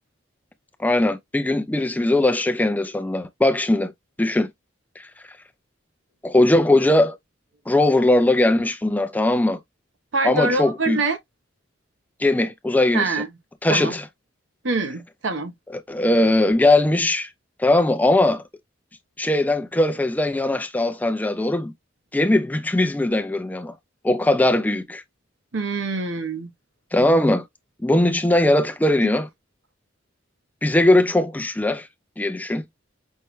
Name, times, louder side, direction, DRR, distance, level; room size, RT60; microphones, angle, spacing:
voice 1, 0.8-3.9 4.2-4.5 5.0-5.1 6.2-7.2 7.7-9.6 10.2-11.0 12.2-13.2 13.6-14.1 15.7-17.3 17.6-18.4 19.2-21.7 22.1-23.8 24.0-25.0 26.9-27.4 27.8-29.3 30.6-31.9 32.2-32.6, left 1 dB, 10° left, 0.4 m, -20 dB
voice 2, 10.1-11.2 12.9-13.3 13.7-13.9 14.6-15.5 25.5-26.5, right 3 dB, 70° right, 0.9 m, -25 dB
5.5 x 2.2 x 3.0 m
head